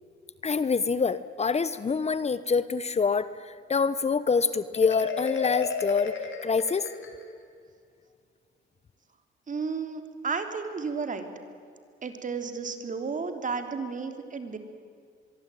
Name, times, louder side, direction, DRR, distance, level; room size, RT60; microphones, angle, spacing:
voice 1, 0.4-6.1 6.4-6.9, left 5 dB, 35° left, 15 dB, 1.0 m, -26 dB
Marimba xylophone, 4.7-7.5, left 5 dB, 70° left, 3.8 m, -34 dB
voice 2, 9.5-11.3 12.0-14.6, right 5 dB, 40° right, 7 dB, 3.3 m, -33 dB
24.0 x 23.0 x 9.2 m, 2.2 s
cardioid pair, 90°, 20 cm